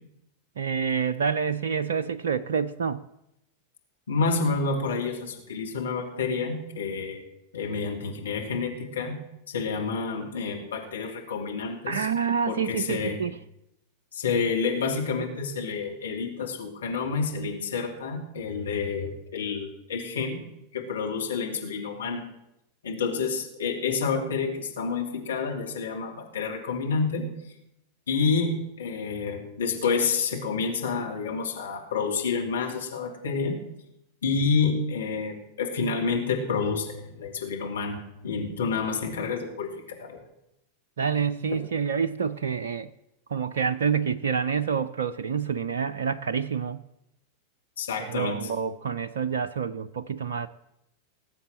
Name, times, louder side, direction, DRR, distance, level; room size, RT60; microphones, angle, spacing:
voice 1, 0.6-3.1 11.9-13.3 41.0-42.9 43.3-46.8 48.0-50.5, right 6 dB, 65° right, 12 dB, 0.5 m, -27 dB
voice 2, 4.1-7.2 7.5-9.1 9.5-12.1 12.5-13.2 14.1-20.4 20.7-22.2 22.8-27.3 28.1-33.6 34.2-40.2 47.8-48.4, left 5 dB, 65° left, 2 dB, 2.7 m, -29 dB
18.5 x 7.8 x 7.7 m, 0.85 s
figure-of-eight pair, 90°, 0 cm